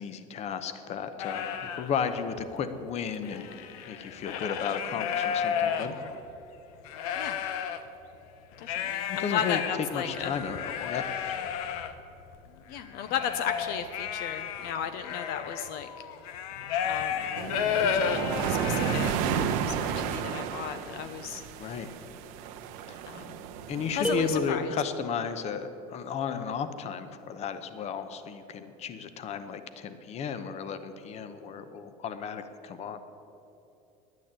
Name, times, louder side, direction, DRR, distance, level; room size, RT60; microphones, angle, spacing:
voice 1, 0.0-3.5 3.9-5.9 9.1-9.6 9.9-11.6 21.6-21.9 22.9-23.0 23.7-33.0, left 6 dB, 35° left, 11 dB, 0.8 m, -34 dB
sound 1, 1.2-1.9 2.4-2.5 2.7-6.3 6.8-7.8 8.6-19.4, left 8 dB, 85° left, 0.9 m, -32 dB
voice 2, 8.6-10.4 12.7-15.9 16.8-17.3 17.7-21.4 23.0-23.4 23.9-24.7, left 8 dB, 60° left, 9 dB, 0.7 m, -35 dB
sound 2, 17.4-24.5, right 7 dB, 75° right, 1.0 m, -32 dB
sound 3, 24.0-25.2, right 1 dB, 5° right, 0.4 m, -32 dB
10.5 x 9.3 x 8.8 m, 3.0 s
supercardioid pair, 135°, 18 cm